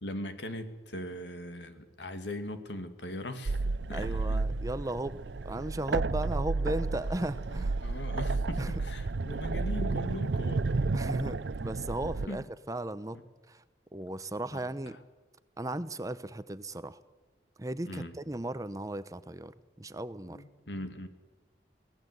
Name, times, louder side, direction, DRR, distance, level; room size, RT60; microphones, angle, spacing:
voice 1, 0.0-3.6 3.9-4.4 7.8-10.7 12.3-12.4 14.5-14.6 17.8-18.1 20.3-21.1, left 1 dB, 90° left, 8 dB, 2.4 m, -40 dB
sound 1, 3.5-12.3, right 3 dB, 85° right, 0.6 m, -32 dB
voice 2, 3.9-7.7 8.6-8.7 10.9-13.2 13.5-13.6 13.9-15.0 15.6-17.0 17.6-20.4, right 1 dB, 20° right, 14 dB, 0.8 m, -36 dB
23.5 x 18.0 x 8.2 m, 1.2 s
head